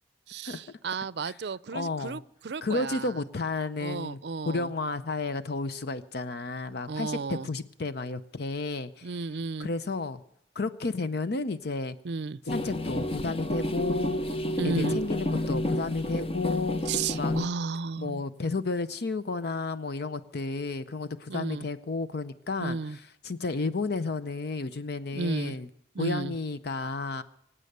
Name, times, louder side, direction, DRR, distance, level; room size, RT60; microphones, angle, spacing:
voice 1, 0.3-3.1 3.8-4.7 6.9-7.5 9.0-9.7 12.0-12.4 14.6-15.0 16.9-18.2 21.3-21.7 22.6-23.0 25.1-25.6 25.9-26.3, right 4 dB, 65° right, 19 dB, 0.5 m, -33 dB
voice 2, 1.7-2.2 2.6-4.2 4.5-9.1 9.6-10.2 10.5-12.0 12.5-14.2 14.6-16.8 17.1-17.4 18.0-25.7 26.0-27.2, left 3 dB, 60° left, 12 dB, 0.6 m, -32 dB
sound 1, 12.5-17.5, left 1 dB, 30° left, 0.9 m, -30 dB
24.0 x 8.9 x 6.7 m, 0.78 s
head